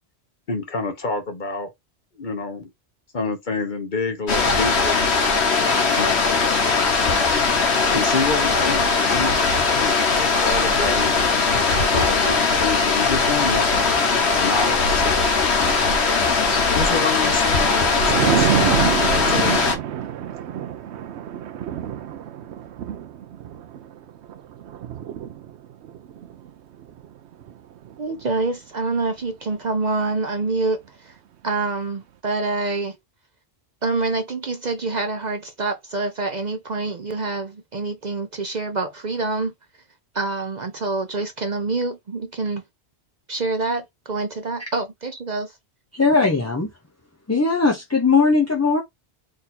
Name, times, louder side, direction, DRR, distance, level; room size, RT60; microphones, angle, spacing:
voice 1, 0.5-1.7 2.2-2.7 3.1-5.0 5.8-6.5 7.8-11.2 11.7-13.8 14.4-15.2 15.6-16.2 16.7-18.5 19.1-19.7, left 3 dB, 45° left, 1.1 m, -28 dB
sound 1, 4.3-19.8, left 4 dB, 70° left, 1.4 m, -20 dB
Thunder, 17.2-28.5 28.9-29.3, right 10 dB, 80° right, 0.9 m, -28 dB
voice 2, 28.0-31.2 31.4-33.0 33.8-39.5 40.1-42.6 43.3-45.5, right 3 dB, 50° right, 0.7 m, -26 dB
voice 3, 45.9-46.7 47.3-48.8, left 4 dB, 20° left, 0.6 m, -19 dB
3.9 x 2.7 x 4.2 m
omnidirectional pair, 1.1 m